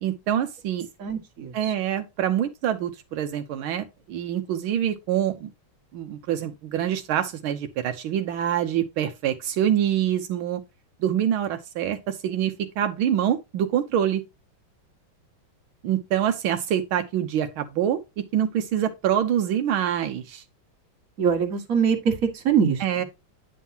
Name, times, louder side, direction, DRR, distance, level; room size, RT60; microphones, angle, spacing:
voice 1, 0.0-0.9 1.5-5.5 5.9-10.6 11.0-14.2 15.8-18.0 18.3-20.4 22.8-23.0, right 10 dB, 85° right, 1.7 m, -25 dB
voice 2, 1.0-1.7 21.2-23.0, right 7 dB, 45° right, 1.8 m, -23 dB
9.3 x 5.5 x 2.8 m
omnidirectional pair, 2.2 m